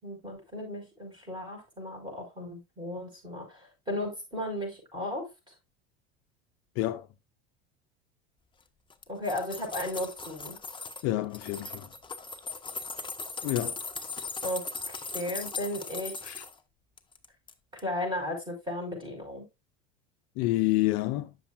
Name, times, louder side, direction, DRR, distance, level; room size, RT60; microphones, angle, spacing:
voice 1, 0.0-5.5 9.1-10.6 14.4-16.3 17.8-19.5, left 1 dB, 15° right, 5.4 m, -35 dB
voice 2, 6.8-7.1 11.0-11.9 13.4-13.8 16.2-16.4 20.4-21.3, left 17 dB, 55° left, 0.6 m, -28 dB
sound 1, 8.9-11.0 11.3-16.5 17.0-17.5 17.8-17.9, left 4 dB, 15° left, 0.9 m, -38 dB
9.4 x 7.0 x 2.5 m
hypercardioid pair, 80°, 30 cm